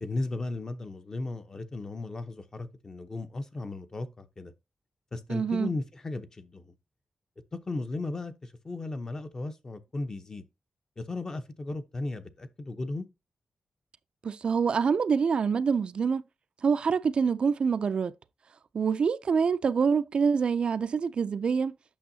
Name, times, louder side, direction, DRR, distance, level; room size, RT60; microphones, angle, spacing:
voice 1, 0.0-4.5 5.1-6.7 7.5-10.4 11.0-13.1, left 2 dB, 30° left, 0.7 m, -36 dB
voice 2, 5.3-5.7 14.2-16.2 16.6-18.1 18.7-21.8, right 6 dB, 50° right, 0.3 m, -26 dB
8.6 x 6.2 x 2.7 m
wide cardioid pair, 125°, 2 cm